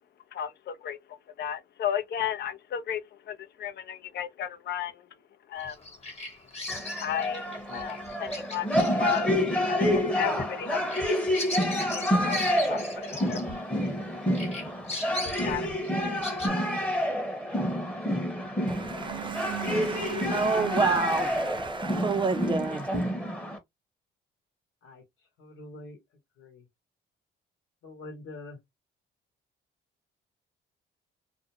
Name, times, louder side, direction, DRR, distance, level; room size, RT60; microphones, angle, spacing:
voice 1, 0.3-5.1 5.5-5.8 7.0-9.3 9.7-13.8 14.5-14.6 15.1-15.7 16.1-16.2, left 10 dB, 55° left, 0.5 m, -35 dB
Bird vocalization bird call bird song, 5.6-14.0 14.3-16.5, left 2 dB, 30° left, 1.2 m, -39 dB
sound 1, 6.7-23.6, equal, 5° left, 0.9 m, -28 dB
voice 2, 18.7-22.9, right 4 dB, 25° right, 0.5 m, -29 dB
sound 2, 18.9-21.8, right 11 dB, 80° right, 0.7 m, -40 dB
voice 3, 25.4-26.0 26.4-26.6 27.8-28.6, left 2 dB, 80° left, 1.0 m, -44 dB
2.5 x 2.1 x 2.7 m
cardioid pair, 90°, 20 cm